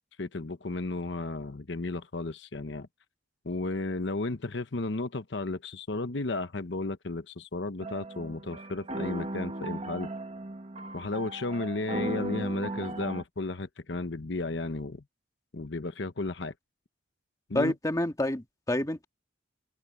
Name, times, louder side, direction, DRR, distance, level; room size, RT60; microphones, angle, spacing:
voice 1, 0.2-2.9 3.4-10.1 10.9-15.0 15.5-16.5 17.5-17.7, left 2 dB, 70° left, 0.9 m, -33 dB
sound 1, 7.8-13.2, right 1 dB, 35° right, 1.8 m, -37 dB
voice 2, 17.5-19.0, left 1 dB, 20° left, 1.8 m, -28 dB
head